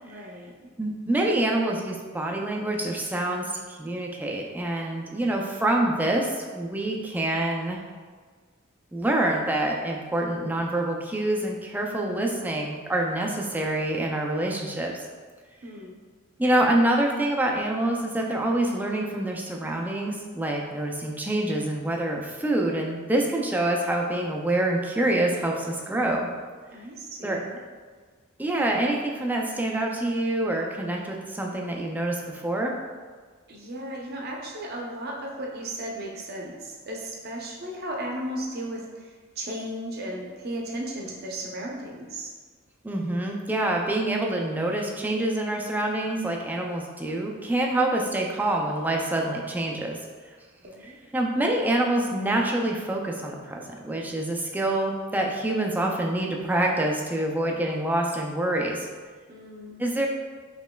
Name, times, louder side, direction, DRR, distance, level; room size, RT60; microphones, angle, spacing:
voice 1, 0.0-0.5 15.6-16.0 26.7-27.6 33.5-42.3 50.6-51.0 59.3-59.8, right 1 dB, 50° right, -1 dB, 0.6 m, -35 dB
voice 2, 0.8-7.8 8.9-14.9 16.4-26.3 27.2-27.4 28.4-32.7 42.8-50.0 50.8-58.9 59.8-60.1, right 1 dB, 10° right, 0 dB, 0.3 m, -26 dB
5.1 x 3.1 x 2.2 m, 1.5 s
head